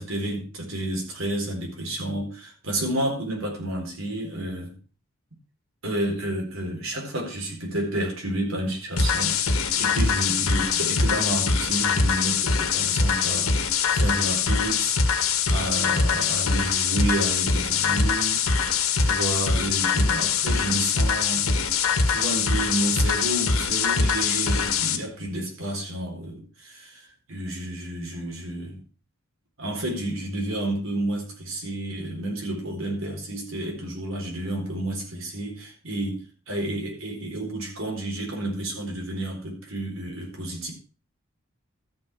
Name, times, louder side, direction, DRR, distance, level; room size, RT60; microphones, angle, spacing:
voice 1, 0.0-4.8 5.8-15.0 15.5-18.4 19.0-21.5 22.1-28.8 29.6-40.7, right 1 dB, 75° right, 0 dB, 4.3 m, -30 dB
sound 1, 9.0-25.0, left 5 dB, 90° left, 1.5 m, -23 dB
13.5 x 6.1 x 5.9 m, 0.36 s
head